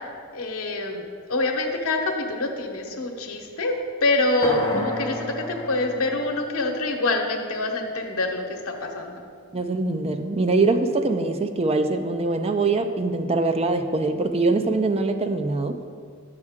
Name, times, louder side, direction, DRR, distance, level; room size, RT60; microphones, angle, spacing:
voice 1, 0.3-1.0 1.3-2.0 2.3-3.7 4.0-9.1, left 2 dB, 75° left, 2 dB, 1.0 m, -25 dB
sound 1, 4.4-8.3, equal, 20° left, 0.8 m, -32 dB
voice 2, 9.5-15.8, right 3 dB, 30° right, 7 dB, 0.4 m, -23 dB
9.5 x 6.5 x 3.6 m, 2.1 s
head